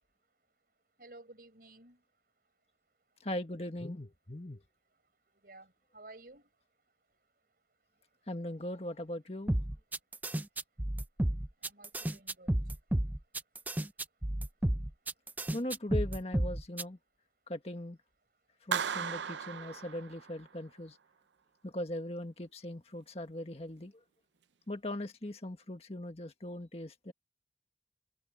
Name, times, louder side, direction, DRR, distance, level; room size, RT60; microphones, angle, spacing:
voice 1, 1.0-2.0 5.4-6.5 11.6-12.5, right 2 dB, 55° right, 4.9 m, -54 dB
voice 2, 3.2-4.6 8.3-9.5 15.5-17.0 17.5-18.0 18.6-21.0 21.6-23.9 24.7-27.1, left 1 dB, 35° left, 1.6 m, -39 dB
sound 1, 9.5-16.8, right 1 dB, 10° right, 0.5 m, -32 dB
Clapping, 18.7-20.6, right 7 dB, 85° right, 0.6 m, -36 dB
open air
head